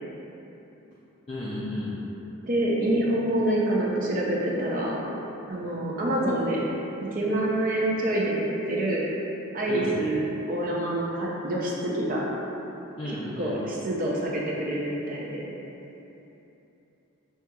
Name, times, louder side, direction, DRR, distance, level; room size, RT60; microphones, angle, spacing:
voice 1, 1.3-2.0 9.7-10.0 13.0-13.6, left 1 dB, 25° left, -9 dB, 0.4 m, -33 dB
voice 2, 2.4-5.0 5.5-6.6 7.1-9.0 9.5-12.3 13.1-15.4, right 1 dB, 40° right, -4 dB, 0.5 m, -26 dB
5.9 x 2.8 x 2.3 m, 3.0 s
head